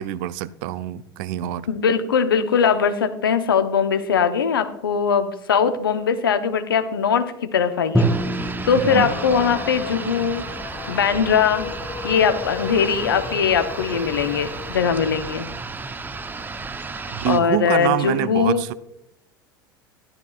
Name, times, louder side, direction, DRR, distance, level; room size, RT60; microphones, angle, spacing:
voice 1, 0.0-1.7 8.7-9.1 17.1-18.7, right 14 dB, 55° right, 0.6 m, -25 dB
voice 2, 1.7-8.1 8.7-10.4 10.9-11.7 12.0-15.5 17.3-18.6, left 6 dB, 80° left, 1.0 m, -21 dB
Drum, 7.9-11.7, right 1 dB, ahead, 1.2 m, -27 dB
sound 1, 8.0-17.4, right 4 dB, 15° right, 0.8 m, -33 dB
sound 2, 8.9-17.8, left 6 dB, 40° left, 1.9 m, -35 dB
14.0 x 11.5 x 2.4 m
figure-of-eight pair, 75°, 12 cm